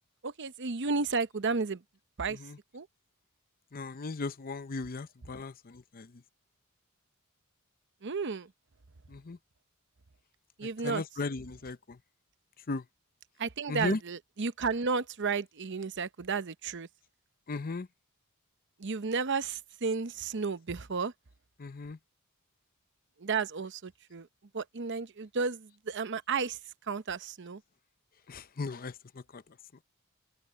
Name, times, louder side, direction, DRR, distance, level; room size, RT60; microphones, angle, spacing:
voice 1, 0.2-1.8 2.2-2.4 2.7-2.9 8.0-8.5 10.6-11.0 13.4-16.9 18.8-21.1 23.2-24.3 24.5-26.6 26.9-27.6, right 4 dB, 55° right, 0.8 m, -32 dB
voice 2, 3.7-6.1 9.1-9.4 10.8-12.0 12.7-12.8 13.7-14.0 17.5-17.9 21.6-22.0 28.3-29.4, left 3 dB, 40° left, 0.6 m, -36 dB
head